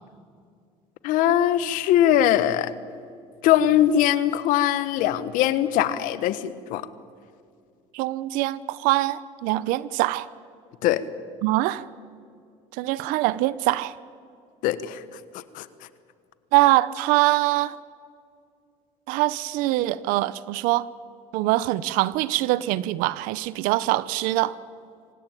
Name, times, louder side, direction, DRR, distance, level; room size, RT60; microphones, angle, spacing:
voice 1, 1.0-2.7 3.4-6.9 10.8-11.0 14.6-15.0 15.5-15.7, left 11 dB, 75° left, 14 dB, 1.4 m, -21 dB
voice 2, 7.9-10.3 11.4-11.9 12.7-14.0 16.5-17.8 19.1-20.9 21.3-24.6, right 17 dB, 80° right, 18 dB, 0.7 m, -23 dB
26.5 x 17.0 x 9.1 m, 2.3 s
cardioid pair, 110°, 14 cm